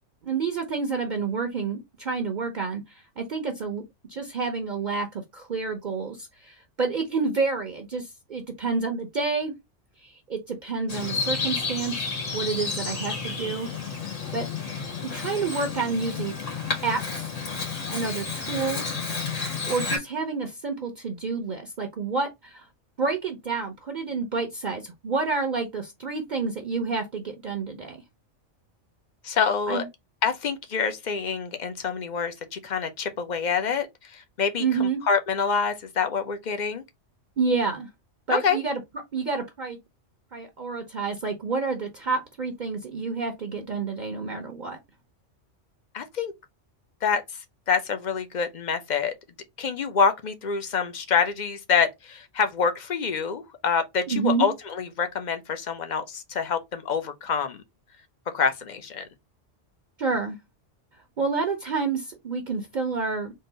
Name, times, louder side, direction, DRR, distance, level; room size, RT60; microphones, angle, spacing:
voice 1, 0.2-3.8 4.1-9.5 10.0-12.1 12.3-13.7 14.0-14.5 15.0-16.3 16.8-17.3 17.9-18.9 19.7-22.7 23.0-28.0 29.7-29.9 34.6-35.0 37.4-37.9 38.3-38.8 39.1-39.8 40.3-44.8 54.1-54.5 60.0-60.4 61.2-63.3, right 4 dB, 45° right, 0.8 m, -29 dB
Bird vocalization bird call bird song, 10.9-20.0, left 4 dB, 85° left, 2.0 m, -31 dB
voice 2, 29.2-29.8 30.2-36.8 38.3-38.6 45.9-46.3 47.0-49.1 49.6-57.6 58.3-59.0, left 6 dB, 45° left, 0.7 m, -26 dB
3.8 x 2.6 x 3.8 m
omnidirectional pair, 1.2 m